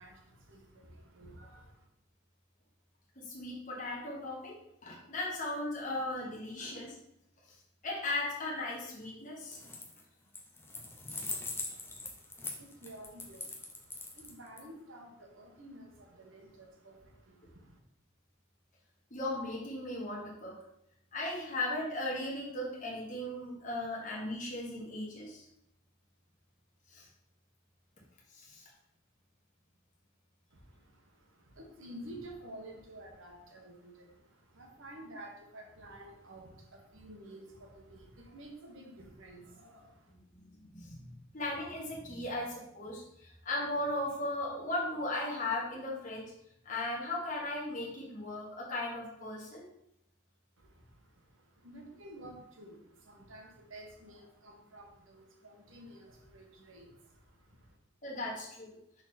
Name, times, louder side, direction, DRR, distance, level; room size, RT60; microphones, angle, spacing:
voice 1, 0.0-1.8 11.5-17.8 30.5-40.1 50.6-57.8, right 1 dB, 65° right, 2 dB, 1.3 m, -52 dB
voice 2, 3.1-6.9 7.8-9.6 19.1-20.6 21.1-25.4 26.9-27.1 28.3-28.7 40.1-41.0 41.3-46.3 46.6-49.6 58.0-58.8, left 2 dB, 35° left, -4 dB, 1.5 m, -37 dB
sound 1, 9.4-10.0 10.3-14.6, left 3 dB, 10° left, 0.7 m, -41 dB
6.2 x 3.9 x 4.3 m, 0.78 s
head